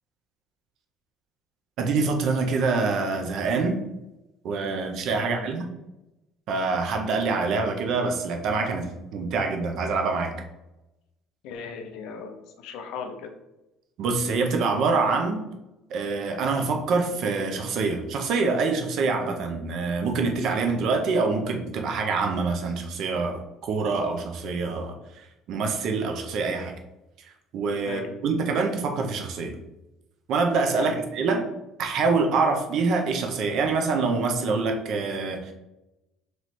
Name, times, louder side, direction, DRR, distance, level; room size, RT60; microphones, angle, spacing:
voice 1, 1.8-3.8 4.4-5.6 6.5-10.3 14.0-15.5 15.9-26.7 27.2-29.5 30.3-31.4 31.8-35.5, right 4 dB, 55° right, 4 dB, 0.6 m, -25 dB
voice 2, 5.2-5.5 11.4-13.3 27.8-28.1 30.8-31.0, left 5 dB, 75° left, 5 dB, 0.6 m, -37 dB
3.1 x 3.1 x 4.1 m, 0.96 s
cardioid pair, 150°, 0 cm